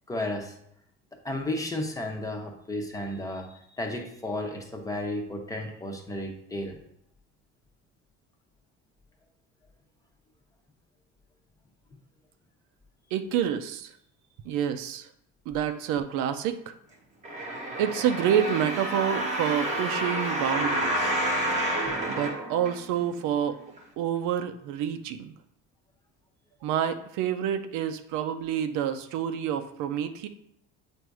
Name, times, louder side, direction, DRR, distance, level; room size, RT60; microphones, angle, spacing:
voice 1, 0.1-0.6 1.2-6.8, left 1 dB, 10° left, 1 dB, 0.8 m, -33 dB
voice 2, 13.1-13.9 14.4-15.1 15.5-16.7 17.8-21.1 22.1-23.6 24.0-25.3 26.6-30.3, right 9 dB, 80° right, 9 dB, 0.6 m, -28 dB
sound 1, 17.2-23.2 23.8-23.9, right 1 dB, 25° right, 1.1 m, -29 dB
7.7 x 2.7 x 4.7 m, 0.73 s
cardioid pair, 140°, 30 cm